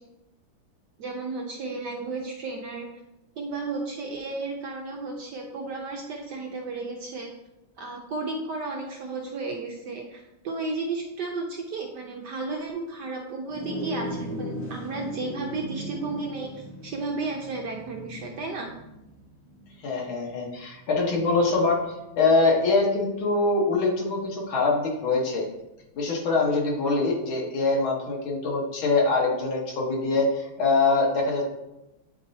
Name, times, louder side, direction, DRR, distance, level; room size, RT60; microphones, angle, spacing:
voice 1, 1.0-2.9 3.4-7.3 7.8-18.7, right 3 dB, 70° right, 1 dB, 1.0 m, -33 dB
sound 1, 13.5-23.1, equal, 25° left, 0.9 m, -38 dB
voice 2, 19.8-21.8 22.2-25.5 26.0-31.5, left 3 dB, 70° left, -1 dB, 2.0 m, -24 dB
8.8 x 4.3 x 2.7 m, 0.93 s
omnidirectional pair, 2.4 m